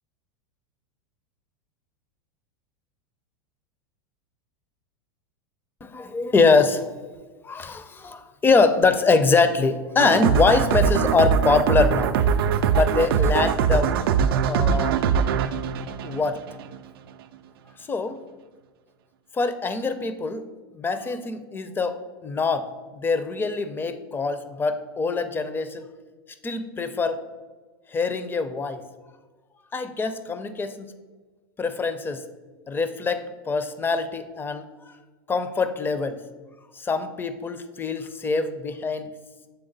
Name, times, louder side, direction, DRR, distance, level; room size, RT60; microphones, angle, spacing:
voice 1, 5.8-6.9 7.4-12.2 12.7-13.9 14.5-15.0 16.0-16.4 17.9-18.2 19.3-20.4 20.7-22.7 22.9-25.8 26.4-27.2 27.9-28.8 29.7-30.9 31.6-32.2 32.7-34.6 35.3-36.2 36.8-39.1, left 4 dB, 15° left, 11 dB, 0.4 m, -23 dB
sound 1, 10.0-16.8, right 7 dB, 75° right, 0.4 m, -22 dB
7.0 x 3.5 x 3.9 m, 1.3 s
hypercardioid pair, 105°, 12 cm